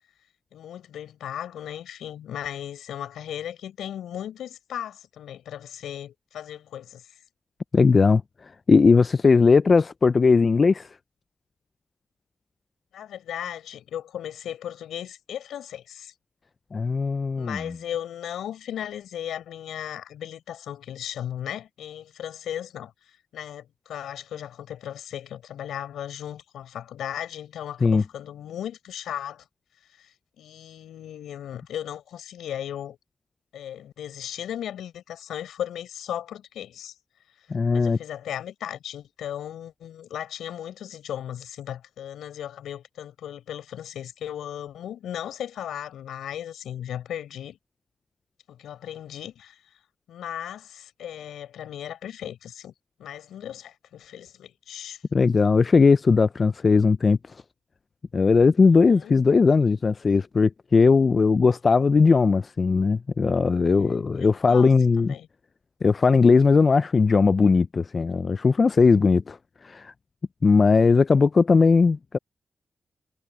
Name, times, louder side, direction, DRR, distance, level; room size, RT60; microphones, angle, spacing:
voice 1, 0.5-7.0 12.9-16.1 17.3-22.9 23.3-29.4 30.0-30.1 30.4-33.0 33.5-36.9 37.7-47.6 48.5-49.6 50.1-52.7 53.0-55.0 58.9-59.1 63.7-65.3, left 10 dB, 90° left, 5.6 m, -36 dB
voice 2, 7.7-8.2 8.7-10.9 16.7-17.8 27.8-28.0 37.5-38.0 55.1-57.2 58.1-65.2 65.8-69.4 69.6-69.9 70.4-72.2, left 4 dB, 50° left, 0.4 m, -19 dB
cardioid pair, 50°, 0 cm